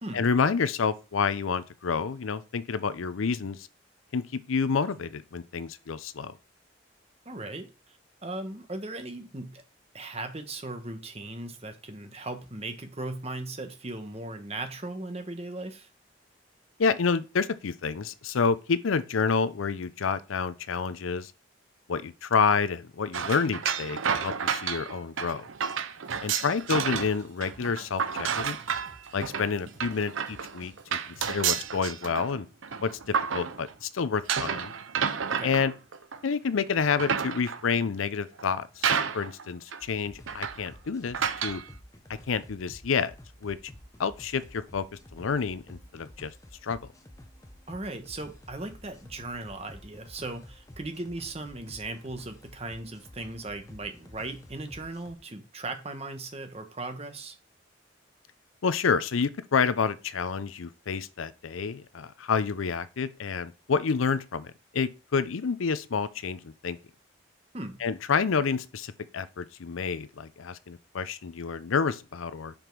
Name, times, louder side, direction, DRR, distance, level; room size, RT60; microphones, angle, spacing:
voice 1, 0.1-3.7 4.1-6.3 16.8-21.3 21.9-25.4 26.2-28.6 29.1-32.5 32.8-34.7 35.4-35.7 36.2-41.6 42.3-43.1 43.4-43.6 44.0-44.8 45.1-46.3 46.6-46.8 58.6-66.8 67.8-72.5, left 5 dB, 85° left, 0.5 m, -29 dB
voice 2, 7.2-9.6 9.9-15.9 35.3-35.6 47.7-57.3 67.5-67.8, right 2 dB, 30° right, 1.1 m, -38 dB
sound 1, 23.1-27.2 27.4-33.8 34.3-36.3 36.8-37.7 38.4-38.5 38.8-39.4 39.7-39.8 40.3-40.7 41.1-41.6, right 7 dB, 80° right, 0.7 m, -30 dB
Drum kit / Drum, 26.0-31.7, right 2 dB, 60° right, 1.4 m, -54 dB
sound 2, 39.8-55.2, left 1 dB, 15° left, 0.7 m, -51 dB
5.8 x 5.2 x 4.6 m
head